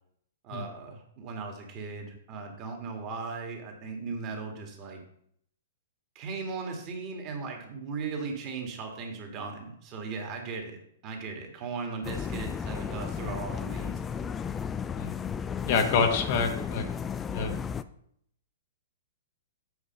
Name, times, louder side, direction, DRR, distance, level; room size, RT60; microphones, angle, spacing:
voice 1, 0.4-5.0 6.2-10.8 11.0-14.2, right 4 dB, 35° right, 3 dB, 1.9 m, -37 dB
sound 1, 12.0-17.8, left 7 dB, 15° left, 0.4 m, -34 dB
voice 2, 15.7-16.8 17.3-17.6, left 5 dB, 45° left, 5 dB, 1.2 m, -27 dB
8.2 x 4.8 x 5.3 m, 0.68 s
figure-of-eight pair, 110°, 0 cm